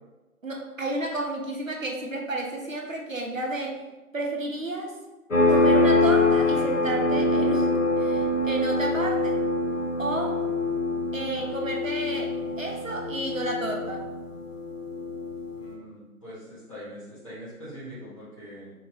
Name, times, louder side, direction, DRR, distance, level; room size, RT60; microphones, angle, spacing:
voice 1, 0.4-3.8 4.1-4.9 5.5-9.4 10.0-10.4 11.1-14.0, right 2 dB, 60° right, 0 dB, 0.8 m, -31 dB
sound 1, 5.3-15.6, left 2 dB, 55° left, 0.9 m, -24 dB
voice 2, 15.5-18.7, equal, 20° left, -13 dB, 1.4 m, -42 dB
3.8 x 3.0 x 3.9 m, 1.1 s
figure-of-eight pair, 175°, 46 cm